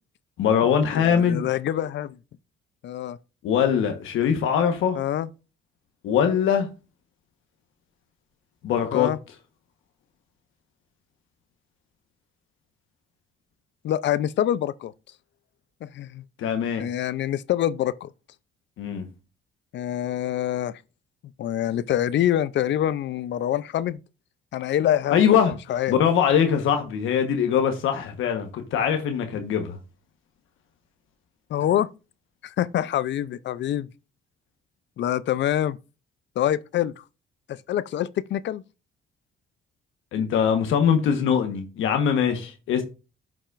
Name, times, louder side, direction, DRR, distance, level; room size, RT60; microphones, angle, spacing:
voice 1, 0.4-1.5 3.4-5.0 6.0-6.7 8.6-9.1 16.4-16.8 18.8-19.1 25.1-25.5 25.9-29.8 40.1-42.8, left 8 dB, 85° left, 1.2 m, -22 dB
voice 2, 0.9-2.2 2.8-3.2 5.0-5.3 8.9-9.2 13.8-14.9 15.8-16.2 16.8-18.1 19.7-20.7 21.4-24.0 24.5-25.2 25.7-26.0 31.5-31.9 32.4-33.9 35.0-35.8 36.4-37.0 37.5-38.6, left 11 dB, 65° left, 0.5 m, -25 dB
11.0 x 6.1 x 2.5 m
cardioid pair, 90°, 20 cm